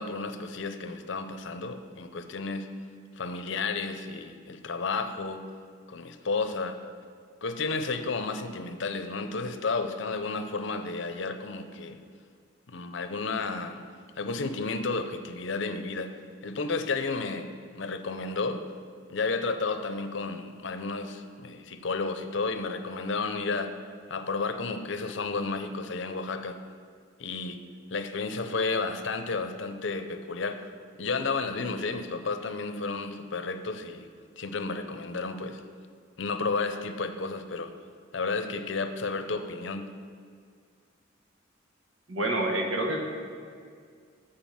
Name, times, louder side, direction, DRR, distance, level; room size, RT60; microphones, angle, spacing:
voice 1, 0.0-2.7 3.2-5.4 5.9-6.8 7.4-12.0 12.7-13.8 14.2-16.1 16.4-18.6 19.1-23.7 24.1-26.6 27.2-27.6 27.9-30.6 31.0-34.1 34.4-35.6 36.2-37.7 38.1-39.9, left 4 dB, 65° left, 8 dB, 0.6 m, -32 dB
voice 2, 42.1-43.0, right 1 dB, 85° right, 1 dB, 1.4 m, -27 dB
7.2 x 6.7 x 5.8 m, 2.1 s
head